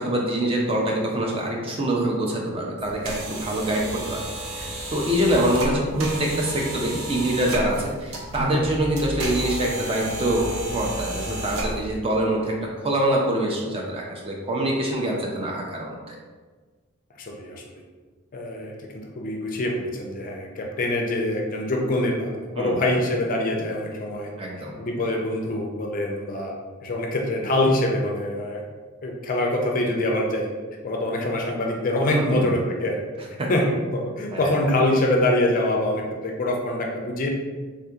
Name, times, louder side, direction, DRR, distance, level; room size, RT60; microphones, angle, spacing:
voice 1, 0.0-4.2 4.5-16.2 22.5-22.8 24.4-24.7 32.1-32.6 33.4-33.5 34.3-34.5, right 1 dB, 25° right, -1 dB, 0.4 m, -25 dB
sound 1, 2.8-12.0, right 1 dB, 75° right, 0.6 m, -32 dB
voice 2, 17.2-17.6 18.3-24.3 24.8-26.5 26.8-28.6 29.0-30.5 30.8-33.0 33.5-37.3, left 1 dB, 40° left, 0 dB, 0.4 m, -25 dB
3.5 x 2.7 x 2.3 m, 1.4 s
head